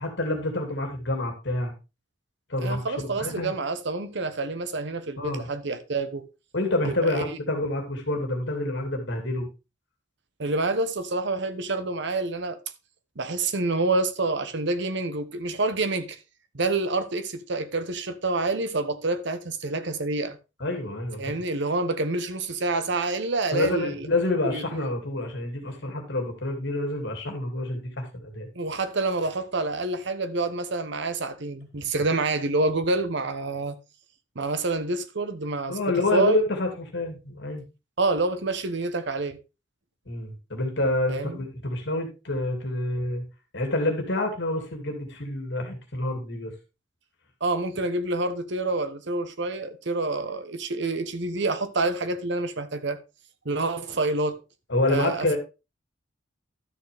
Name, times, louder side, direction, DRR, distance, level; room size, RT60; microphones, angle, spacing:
voice 1, 0.0-1.7 2.5-3.5 5.2-5.4 6.5-9.5 20.6-21.4 23.5-28.5 35.7-37.6 40.1-43.2 43.5-46.5 54.7-55.4, left 2 dB, 60° left, 2.5 m, -28 dB
voice 2, 2.6-6.2 6.8-7.4 10.4-12.6 13.2-16.2 16.5-20.4 21.2-24.1 24.4-24.9 28.5-33.8 34.3-35.8 36.1-36.4 38.0-39.4 41.1-41.4 47.4-53.0 53.4-54.4 54.9-55.4, right 2 dB, 60° right, 1.0 m, -27 dB
12.0 x 6.6 x 3.5 m
head